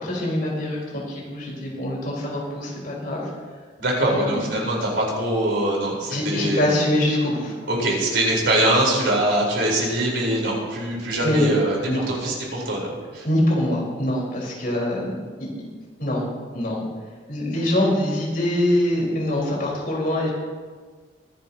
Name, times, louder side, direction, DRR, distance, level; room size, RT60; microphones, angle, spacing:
voice 1, 0.0-0.8 1.1-3.2 4.0-4.4 6.1-7.5 11.2-11.5 11.9-12.1 13.2-15.1 16.0-16.2 16.5-16.8 17.3-20.3, left 1 dB, 50° left, -4 dB, 4.4 m, -23 dB
voice 2, 3.8-6.6 7.7-13.2, right 1 dB, 70° right, -3 dB, 4.4 m, -23 dB
23.5 x 10.5 x 2.9 m, 1.5 s
head